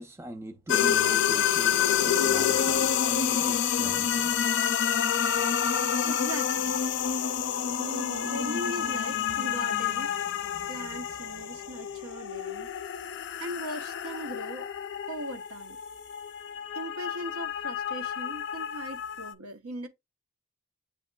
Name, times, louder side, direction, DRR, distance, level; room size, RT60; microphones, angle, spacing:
voice 1, 0.0-4.3, equal, 10° right, 0.4 m, -40 dB
sound 1, 0.7-19.3, left 8 dB, 55° left, 0.4 m, -28 dB
voice 2, 6.0-6.8 7.8-10.1 10.7-12.7 13.4-14.7 15.1-15.8 16.7-19.9, right 1 dB, 85° right, 0.9 m, -39 dB
8.3 x 2.8 x 2.2 m
head